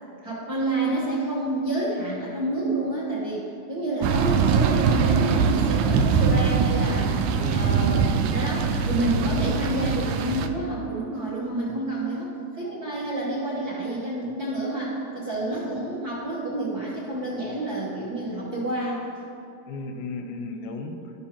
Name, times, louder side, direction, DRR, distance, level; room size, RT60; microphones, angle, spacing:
voice 1, 0.2-7.1 7.5-19.0, right 2 dB, 50° right, -7 dB, 1.2 m, -29 dB
sound 1, 4.0-10.5, right 5 dB, 90° right, 2.0 m, -22 dB
voice 2, 7.3-8.0 19.7-21.1, left 2 dB, 85° left, 5 dB, 2.1 m, -34 dB
13.5 x 5.5 x 3.0 m, 2.7 s
omnidirectional pair, 3.3 m